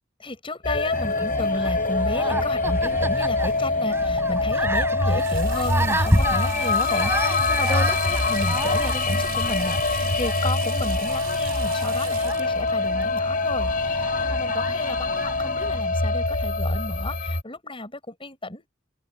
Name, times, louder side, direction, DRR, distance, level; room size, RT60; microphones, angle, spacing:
voice 1, 0.2-18.7, left 2 dB, 25° left, 7.2 m, -33 dB
sound 1, 0.6-17.4, left 3 dB, 45° left, 5.4 m, -24 dB
sound 2, 0.9-15.8, right 1 dB, 15° right, 4.6 m, -31 dB
Water tap faucet / Sink (filling or washing), 5.0-14.3, right 10 dB, 50° right, 5.0 m, -40 dB
head